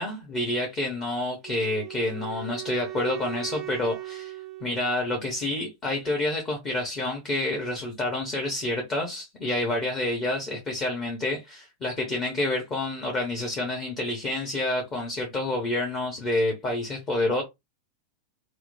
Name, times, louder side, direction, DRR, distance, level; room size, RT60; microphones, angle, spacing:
voice 1, 0.0-17.4, left 1 dB, 30° left, 0.9 m, -28 dB
Wind instrument woodwind instrument, 1.4-5.5, right 16 dB, 30° right, 0.3 m, -39 dB
3.0 x 2.1 x 2.5 m
figure-of-eight pair, 90°, 0 cm